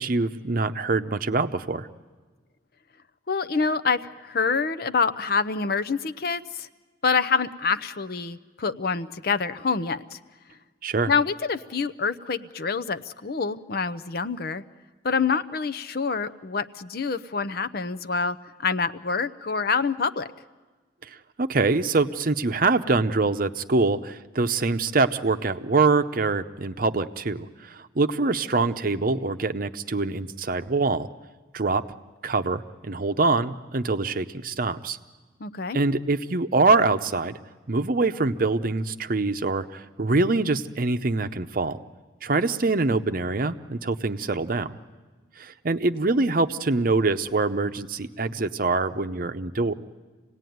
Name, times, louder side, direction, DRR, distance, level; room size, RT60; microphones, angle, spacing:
voice 1, 0.0-1.9 10.8-11.1 21.0-31.1 31.5-31.8 32.2-35.0 35.7-37.4 37.7-41.8 42.2-44.8 45.4-49.7, right 3 dB, 50° right, 9 dB, 0.7 m, -24 dB
voice 2, 3.3-6.7 7.0-10.2 11.1-14.6 15.0-20.3 35.4-35.8, left 5 dB, 55° left, 13 dB, 0.7 m, -26 dB
27.0 x 18.0 x 9.3 m, 1.3 s
head